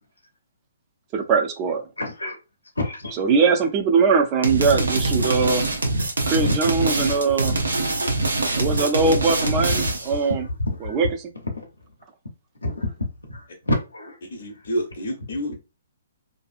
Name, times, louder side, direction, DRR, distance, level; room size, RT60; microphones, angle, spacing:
voice 1, 1.1-1.8 3.2-5.7 6.3-7.6 8.6-10.4 10.8-11.3, right 5 dB, 30° right, 0.5 m, -21 dB
voice 2, 2.0-2.4 2.8-3.2 5.3-5.4 6.4-7.1 7.7-8.2 10.0-11.0 11.5-11.6 12.6-14.2, left 1 dB, 90° left, 0.6 m, -29 dB
sound 1, 4.4-10.2, right 2 dB, 80° right, 0.7 m, -24 dB
voice 3, 14.3-15.5, equal, 50° left, 0.7 m, -29 dB
2.6 x 2.3 x 2.4 m
figure-of-eight pair, 130°, 0 cm